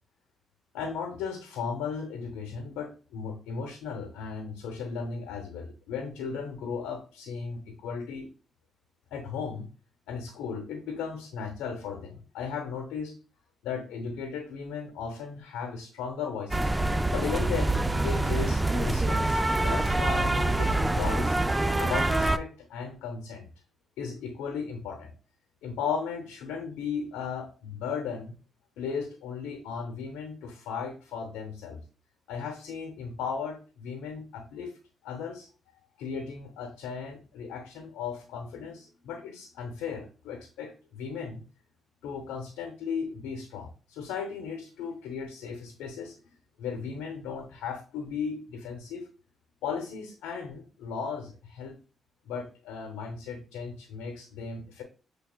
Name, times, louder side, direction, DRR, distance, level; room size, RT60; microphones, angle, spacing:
voice 1, 0.7-8.3 9.1-9.7 10.1-13.1 13.6-16.7 17.1-21.4 21.8-23.5 24.0-25.1 25.6-28.3 28.8-31.8 32.3-34.7 35.0-35.5 36.0-41.4 42.0-46.2 46.6-49.1 49.6-51.8 52.3-54.8, left 6 dB, 90° left, 5 dB, 0.7 m, -36 dB
sound 1, 16.5-22.4, right 2 dB, 15° right, 0.4 m, -25 dB
6.9 x 3.4 x 2.2 m, 0.37 s
supercardioid pair, 55°, 0 cm